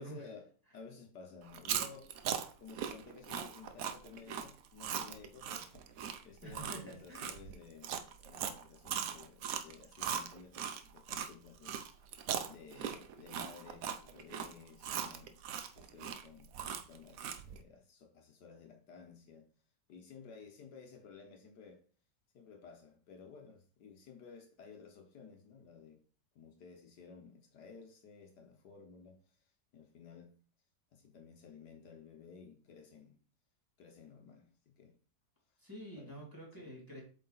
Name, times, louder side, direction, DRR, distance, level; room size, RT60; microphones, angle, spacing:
voice 1, 0.0-2.2 2.6-15.4 15.7-16.5 16.9-19.5 19.9-21.8 22.3-26.0 26.3-30.3 30.9-33.2 33.8-35.0 35.9-36.2 36.6-36.7, left 5 dB, 70° left, 1.6 m, -55 dB
Chewing mastication, 1.5-11.3 11.6-17.6, right 8 dB, 65° right, 0.9 m, -39 dB
voice 2, 6.4-7.3 35.6-37.0, right 1 dB, 10° right, 2.4 m, -48 dB
7.9 x 3.8 x 4.1 m
omnidirectional pair, 1.9 m